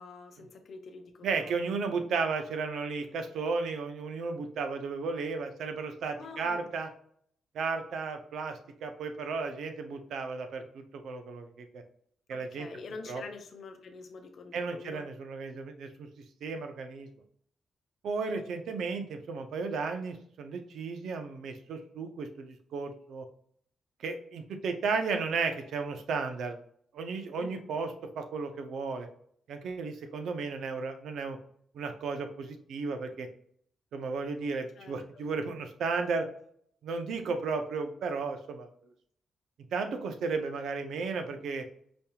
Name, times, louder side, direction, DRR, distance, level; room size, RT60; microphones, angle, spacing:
voice 1, 0.0-1.7 6.2-6.7 12.3-15.1 27.4-27.7 34.8-35.3, left 4 dB, 60° left, 4 dB, 0.8 m, -46 dB
voice 2, 1.2-6.9 7.5-11.8 12.3-12.7 13.1-13.2 14.5-16.1 16.4-17.1 18.0-23.3 24.0-26.6 26.9-29.1 29.5-31.4 31.7-33.3 33.9-36.3 36.8-38.7 39.7-41.7, right 4 dB, 80° right, 6 dB, 0.6 m, -34 dB
5.2 x 2.9 x 2.3 m, 0.65 s
cardioid pair, 115°, 0 cm